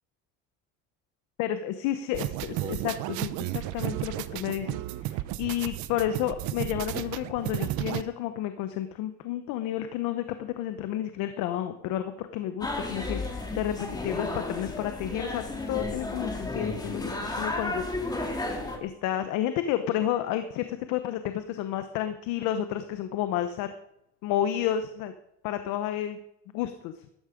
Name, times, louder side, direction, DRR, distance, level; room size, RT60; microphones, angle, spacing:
voice 1, 1.4-4.8 5.0-18.2 18.8-23.7 24.2-25.1 25.4-26.2 26.5-26.9, left 11 dB, 90° left, 9 dB, 0.9 m, -31 dB
sound 1, 2.1-8.0, right 15 dB, 80° right, 0.8 m, -33 dB
sound 2, 12.6-18.8, left 2 dB, 15° left, 2.1 m, -33 dB
13.0 x 12.0 x 5.1 m, 0.82 s
cardioid pair, 135°, 29 cm